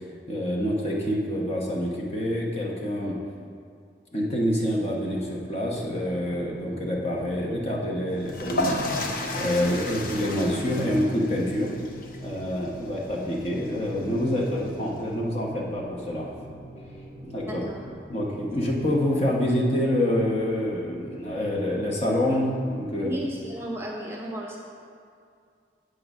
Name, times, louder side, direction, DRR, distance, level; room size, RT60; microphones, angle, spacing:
voice 1, 0.3-3.2 4.1-8.8 9.3-11.7 12.2-16.3 17.2-17.6 18.1-23.1, left 1 dB, 35° left, -3 dB, 1.0 m, -27 dB
sound 1, 5.7-23.6, right 1 dB, 30° right, 1.1 m, -44 dB
sound 2, 8.2-15.0, left 1 dB, 50° left, 0.6 m, -33 dB
voice 2, 17.4-17.8 23.0-24.6, equal, 15° right, -2 dB, 0.7 m, -33 dB
7.9 x 3.9 x 6.0 m, 2.2 s
head